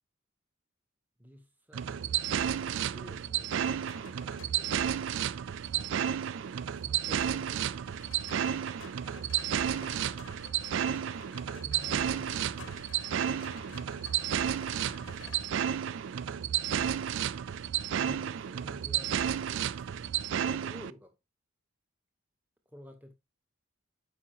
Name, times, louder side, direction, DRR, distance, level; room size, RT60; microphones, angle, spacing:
voice 1, 1.2-4.8 5.6-6.0 6.3-6.5 6.8-7.8 9.0-10.1 10.7-11.2 11.5-14.0 14.3-16.0 16.7-17.2 17.9-21.2 22.7-23.1, equal, 10° right, 1.0 m, -54 dB
sound 1, 1.7-20.9, right 9 dB, 60° right, 0.3 m, -32 dB
sound 2, 3.5-4.8 7.5-15.6 17.8-18.2, left 4 dB, 70° left, 0.8 m, -51 dB
7.0 x 5.1 x 3.0 m
head